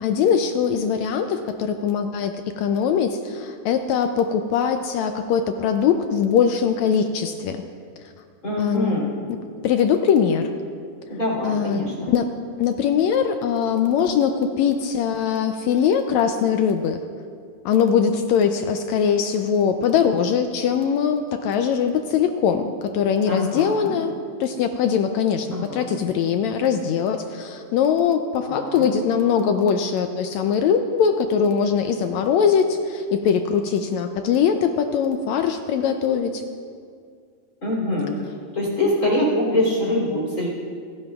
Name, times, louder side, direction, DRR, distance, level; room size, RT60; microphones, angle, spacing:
voice 1, 0.0-7.6 8.6-9.0 9.6-10.5 11.4-12.3 12.6-17.0 17.7-24.1 24.4-36.4, left 7 dB, 80° left, 7 dB, 1.6 m, -21 dB
voice 2, 8.4-9.1 11.1-12.1 23.3-24.0 25.5-26.0 28.5-28.9 37.6-38.1 38.5-40.5, left 1 dB, 30° left, -4 dB, 3.3 m, -24 dB
27.5 x 11.0 x 2.4 m, 2.2 s
omnidirectional pair, 3.6 m